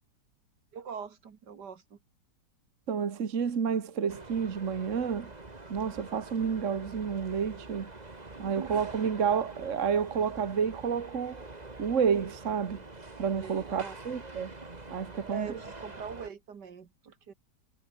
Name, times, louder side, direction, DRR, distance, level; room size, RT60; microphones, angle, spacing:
voice 1, 0.7-2.0 8.4-8.9 13.4-14.0 15.3-17.3, right 6 dB, 70° right, 2.4 m, -42 dB
voice 2, 2.9-5.3 5.7-7.9 8.4-11.4 11.8-12.8 13.2-14.5 14.9-15.6, right 7 dB, 45° right, 1.7 m, -30 dB
sound 1, 4.1-16.3, right 2 dB, 25° right, 2.3 m, -46 dB
omnidirectional pair, 1.9 m